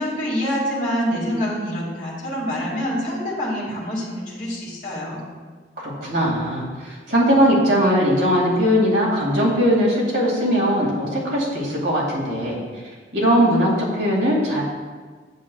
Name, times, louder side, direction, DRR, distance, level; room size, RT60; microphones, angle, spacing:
voice 1, 0.0-5.2, equal, 45° left, -5 dB, 2.1 m, -26 dB
voice 2, 5.8-12.6 13.1-14.6, equal, 70° right, -4 dB, 2.1 m, -20 dB
8.0 x 7.5 x 2.3 m, 1.5 s
head